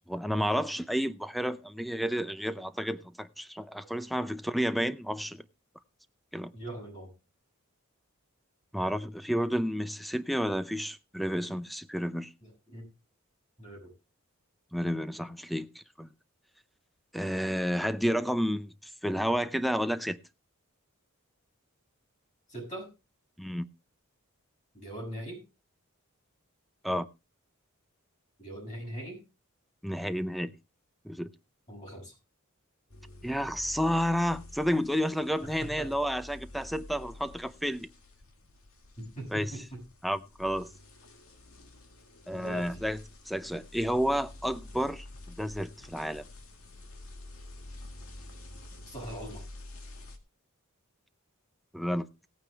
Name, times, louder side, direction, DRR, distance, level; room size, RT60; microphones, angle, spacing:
voice 1, 0.1-5.4 6.3-6.5 8.7-12.3 14.7-16.1 17.1-20.2 23.4-23.7 26.8-27.1 29.8-30.6 31.0-31.3 33.2-37.9 39.3-39.5 40.0-40.7 42.3-43.0 43.3-46.2 51.7-52.1, equal, ahead, 0.6 m, -31 dB
voice 2, 6.5-7.1 12.4-12.9 13.6-13.9 22.5-22.9 24.7-25.4 28.4-29.2 31.7-32.2 35.4-35.9 39.0-39.8 42.3-42.8 48.9-49.4, right 1 dB, 35° left, 6.9 m, -41 dB
sound 1, 32.9-50.2, left 2 dB, 75° left, 2.1 m, -49 dB
17.5 x 9.0 x 3.5 m
head